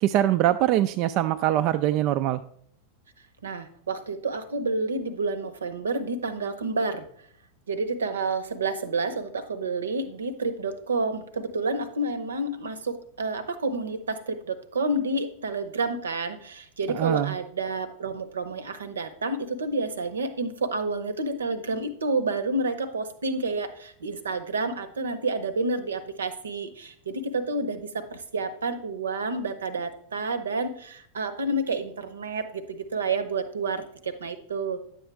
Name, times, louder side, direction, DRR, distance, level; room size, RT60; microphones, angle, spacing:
voice 1, 0.0-2.4 16.9-17.3, right 13 dB, 40° right, 10 dB, 0.4 m, -23 dB
voice 2, 3.4-7.0 7.7-34.8, right 3 dB, 70° right, 12 dB, 0.8 m, -29 dB
10.5 x 7.7 x 3.4 m, 0.64 s
figure-of-eight pair, 90°, 0 cm